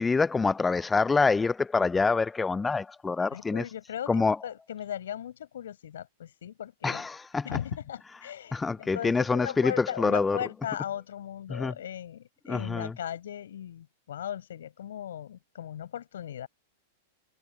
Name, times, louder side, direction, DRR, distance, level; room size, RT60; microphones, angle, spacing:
voice 1, 0.0-3.6 4.1-4.4 6.8-7.4 8.5-9.7 10.0-10.4 11.5-11.7 12.5-12.9, left 4 dB, 15° left, 0.6 m, -26 dB
voice 2, 3.3-7.1 7.4-16.5, left 10 dB, 75° left, 6.2 m, -38 dB
hypercardioid pair, 105°, 0 cm